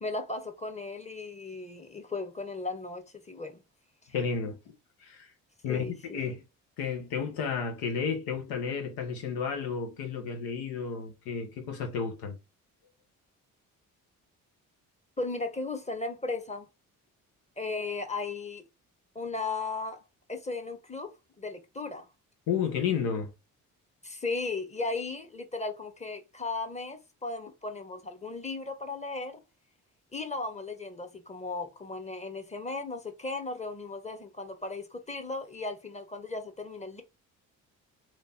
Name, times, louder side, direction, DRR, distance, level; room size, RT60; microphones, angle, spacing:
voice 1, 0.0-3.6 5.7-6.2 15.2-16.7 17.6-18.6 19.1-20.0 20.3-22.1 24.0-29.4 30.1-37.0, left 3 dB, 20° left, 1.1 m, -36 dB
voice 2, 4.1-4.7 5.0-5.3 5.6-6.4 6.8-12.4 22.5-23.3, left 6 dB, 90° left, 1.1 m, -32 dB
3.3 x 2.9 x 4.2 m
supercardioid pair, 65°, 36 cm